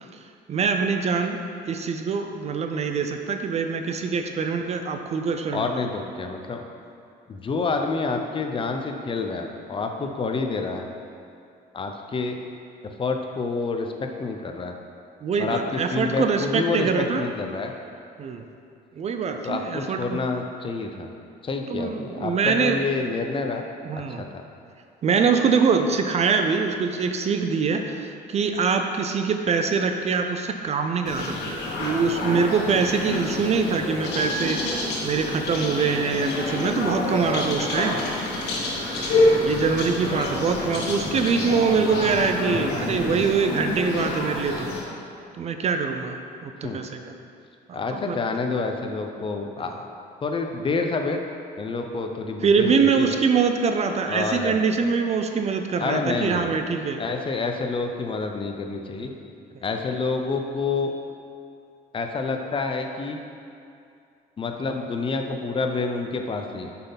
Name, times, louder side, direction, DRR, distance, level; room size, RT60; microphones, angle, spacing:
voice 1, 0.5-1.4 1.6-5.7 15.2-17.2 18.2-18.4 19.0-20.2 21.7-22.8 23.9-24.3 25.0-38.1 39.4-44.7 45.3-46.2 46.4-47.1 47.7-48.2 52.4-57.0, right 5 dB, 40° right, 6 dB, 0.5 m, -24 dB
voice 2, 5.5-6.6 7.3-10.8 11.7-12.4 12.8-14.7 15.4-17.7 19.4-21.1 21.4-23.7 24.2-24.4 40.2-40.4 46.6-46.8 47.7-49.8 50.2-51.2 51.6-53.2 54.0-54.6 55.8-56.6 57.0-59.1 59.6-60.9 61.9-63.2 64.4-66.7, left 4 dB, 30° left, 4 dB, 0.7 m, -28 dB
sound 1, 31.1-44.8, left 2 dB, 85° left, 1.4 m, -27 dB
7.8 x 5.6 x 4.0 m, 2.4 s
cardioid pair, 110°, 17 cm